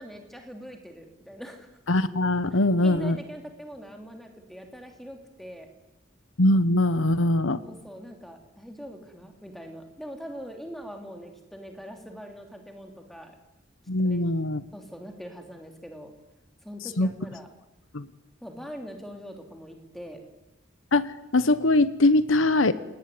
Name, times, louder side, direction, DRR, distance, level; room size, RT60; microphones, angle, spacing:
voice 1, 0.0-1.7 2.5-5.7 7.6-13.3 14.0-14.2 14.7-16.1 16.6-17.5 18.4-20.2, equal, ahead, 3 dB, 3.3 m, -42 dB
voice 2, 1.9-3.2 6.4-7.6 13.9-14.6 17.0-17.1 17.9-18.1 20.9-22.7, left 2 dB, 80° left, 14 dB, 1.1 m, -22 dB
29.0 x 18.5 x 9.5 m, 1.0 s
head